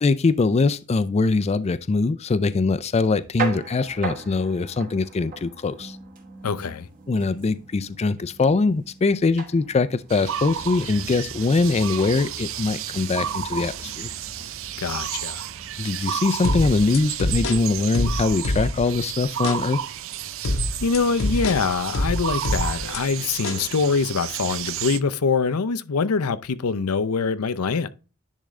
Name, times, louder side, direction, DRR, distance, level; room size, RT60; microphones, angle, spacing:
voice 1, 0.0-6.0 7.1-14.1 15.8-19.8, left 3 dB, 30° left, 0.4 m, -22 dB
sound 1, 3.0-19.1, right 4 dB, 40° right, 1.5 m, -40 dB
voice 2, 6.4-6.9 14.8-15.4 20.8-27.9, left 5 dB, 85° left, 0.6 m, -24 dB
sound 2, 10.1-25.0, right 10 dB, 65° right, 0.5 m, -32 dB
sound 3, 16.4-19.0 19.4-19.6 20.4-23.0 23.4-23.6, left 2 dB, 65° left, 0.9 m, -26 dB
10.0 x 3.7 x 3.2 m
head